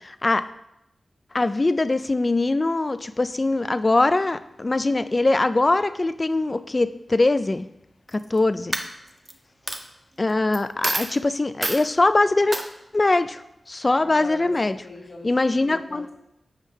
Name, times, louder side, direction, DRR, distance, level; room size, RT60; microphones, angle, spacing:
voice 1, 0.0-0.4 1.3-7.7 8.1-8.7 10.2-12.6 12.9-13.4 13.7-14.8 15.2-16.1, left 2 dB, 30° left, 13 dB, 0.3 m, -22 dB
Coin (dropping), 8.1-8.4 8.7-9.3 9.7-9.8 10.5-10.6 10.8-11.1 11.6-11.8 12.5-12.7, right 2 dB, 35° right, 0.6 m, -27 dB
voice 2, 14.0-15.3 15.6-16.1, left 2 dB, 80° left, -7 dB, 1.4 m, -41 dB
7.3 x 5.2 x 3.3 m, 0.83 s
wide cardioid pair, 100°, 0 cm